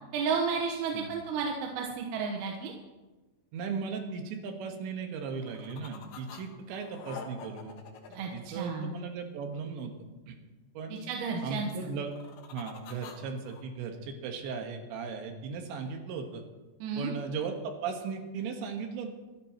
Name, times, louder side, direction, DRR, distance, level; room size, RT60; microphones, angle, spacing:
voice 1, 0.1-2.7 8.1-8.9 10.9-11.9 16.8-17.1, right 5 dB, 85° right, 1 dB, 3.9 m, -32 dB
voice 2, 3.5-7.8 8.3-10.0 10.3-10.4 10.8-11.0 11.4-12.1 12.5-16.4 17.0-19.1, right 5 dB, 70° right, 4 dB, 3.5 m, -37 dB
sound 1, 5.2-6.4 6.7-9.2 11.9-13.6, left 7 dB, 80° left, 4.0 m, -47 dB
26.0 x 13.0 x 3.0 m, 1.2 s
omnidirectional pair, 5.8 m